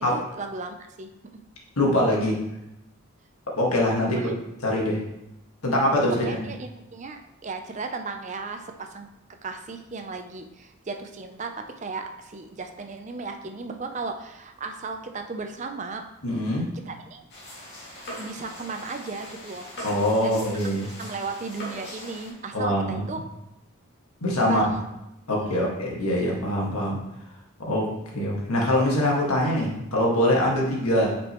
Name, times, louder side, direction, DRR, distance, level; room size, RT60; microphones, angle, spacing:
voice 1, 0.1-1.1 4.1-4.3 6.2-9.1 9.4-16.0 16.9-17.2 17.5-17.6 18.2-19.7 20.2-20.3 20.8-23.2 24.4-24.8 25.4-25.7, right 4 dB, 35° right, 6 dB, 0.5 m, -35 dB
voice 2, 1.8-2.4 3.6-4.2 4.6-5.0 5.6-6.5 16.2-16.7 19.8-20.9 22.5-23.1 24.2-24.6 25.3-27.0 27.6-31.1, left 1 dB, 85° left, -2 dB, 1.8 m, -23 dB
sound 1, 17.3-22.3, equal, 50° left, 2.1 m, -41 dB
8.8 x 5.3 x 3.0 m, 0.91 s
head